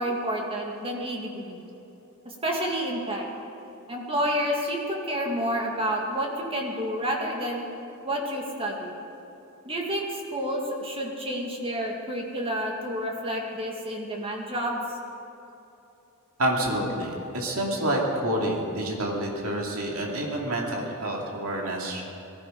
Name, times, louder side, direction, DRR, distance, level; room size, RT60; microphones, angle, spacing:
voice 1, 0.0-1.6 2.3-3.2 3.9-7.7 8.0-8.9 9.6-14.8, equal, 25° right, 0 dB, 2.0 m, -29 dB
voice 2, 16.4-22.0, right 1 dB, 70° right, -1 dB, 2.6 m, -28 dB
19.5 x 14.0 x 5.2 m, 2.9 s
head